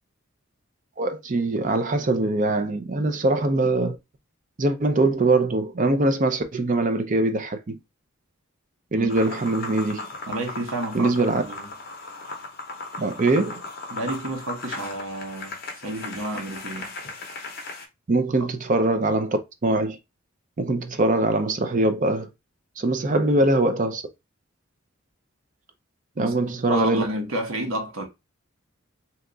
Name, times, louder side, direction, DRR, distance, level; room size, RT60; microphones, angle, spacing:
voice 1, 1.0-4.0 4.6-7.8 8.9-10.1 10.9-11.4 13.0-13.6 18.1-20.0 20.6-22.3 22.8-24.0 26.2-27.0, right 2 dB, 35° right, 0.5 m, -22 dB
sound 1, 9.1-17.9, left 3 dB, 45° left, 0.7 m, -37 dB
voice 2, 10.3-11.1 11.4-11.7 13.9-16.9 18.4-18.5 26.2-26.3 26.7-28.1, right 1 dB, 70° right, 0.9 m, -30 dB
2.9 x 2.3 x 3.7 m
head